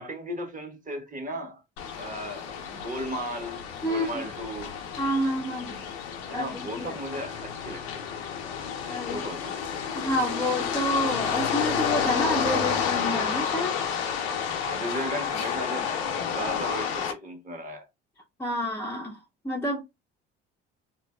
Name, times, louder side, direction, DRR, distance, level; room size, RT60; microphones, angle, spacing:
voice 1, 0.0-1.6 1.9-4.7 6.3-8.1 9.1-9.4 9.7-9.8 14.6-17.9, right 1 dB, 25° right, 1.1 m, -36 dB
sound 1, 1.8-17.1, left 7 dB, 85° left, 0.6 m, -30 dB
voice 2, 3.8-4.2 5.0-5.8 6.3-7.0 8.9-9.3 9.9-13.8 18.4-19.2 19.4-19.8, equal, 10° left, 0.5 m, -29 dB
2.8 x 2.5 x 2.2 m
hypercardioid pair, 60°, 30 cm